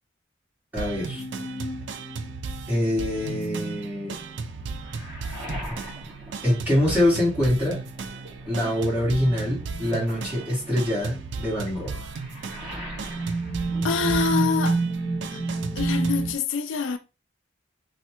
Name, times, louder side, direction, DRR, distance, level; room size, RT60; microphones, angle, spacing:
voice 1, 0.7-1.2 2.7-4.1 6.4-7.8 8.5-12.1, left 1 dB, 10° right, 1.7 m, -24 dB
sound 1, 0.8-16.3, right 4 dB, 70° right, 0.4 m, -36 dB
sound 2, 1.1-4.9 7.2-7.3 8.1-8.2 8.9-10.0 10.9-11.3 12.0-16.3, right 3 dB, 30° left, 0.6 m, -30 dB
Waves surf, 4.2-7.4 7.7-14.6 14.9-15.8, equal, 30° right, 1.4 m, -42 dB
voice 2, 13.8-14.8 15.3-15.4 15.8-17.0, left 5 dB, 80° left, 0.3 m, -26 dB
3.2 x 2.3 x 2.9 m
head